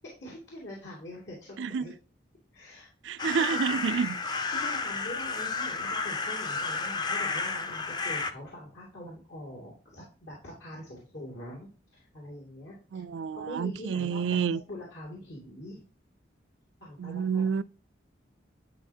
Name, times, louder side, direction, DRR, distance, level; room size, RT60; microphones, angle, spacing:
voice 1, 0.2-1.9 2.5-2.9 3.3-3.6 3.9-13.0 13.3-14.2 14.7-15.8 16.8-17.5, equal, 75° left, 2.5 m, -44 dB
voice 2, 1.6-1.9 3.0-4.2 12.9-14.6 17.0-17.6, right 6 dB, 85° right, 0.4 m, -29 dB
sound 1, 3.2-8.3, left 4 dB, 25° left, 0.5 m, -32 dB
10.5 x 4.3 x 2.7 m
head